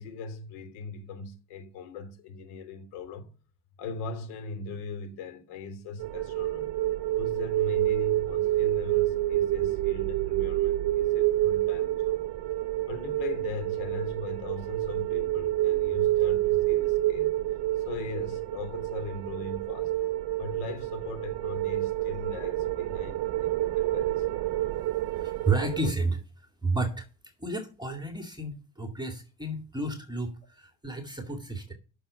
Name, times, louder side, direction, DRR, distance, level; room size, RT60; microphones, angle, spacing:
voice 1, 0.0-3.3 3.8-6.7 7.2-12.2 12.9-17.3 17.8-19.9 20.4-24.3, left 4 dB, 85° left, 2.9 m, -39 dB
sound 1, 6.0-25.9, right 15 dB, 50° right, 0.8 m, -28 dB
voice 2, 25.1-26.2 26.6-27.1 27.4-31.7, right 3 dB, 10° right, 2.2 m, -31 dB
8.6 x 6.7 x 7.8 m
supercardioid pair, 80°, 48 cm